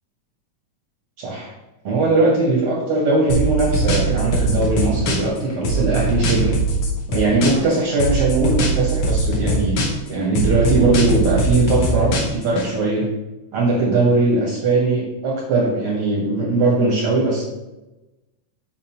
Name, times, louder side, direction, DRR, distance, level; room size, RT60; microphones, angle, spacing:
voice 1, 1.2-1.5 1.8-6.6 7.1-13.1 13.5-17.4, right 2 dB, 60° right, -3 dB, 1.5 m, -20 dB
sound 1, 3.3-5.4 5.6-7.7 8.0-10.1 10.3-12.7, right 2 dB, 65° left, 1.4 m, -21 dB
7.3 x 4.9 x 2.9 m, 1.0 s
omnidirectional pair, 3.6 m